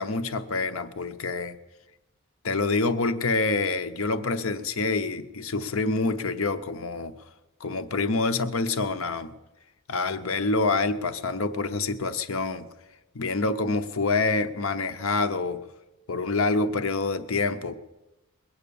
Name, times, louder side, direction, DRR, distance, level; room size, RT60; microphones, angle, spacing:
voice 1, 0.0-1.6 2.4-7.1 7.6-9.3 9.9-12.7 13.1-15.7 16.1-17.7, left 3 dB, 65° left, 10 dB, 0.8 m, -27 dB
21.5 x 8.5 x 7.0 m, 1.0 s
head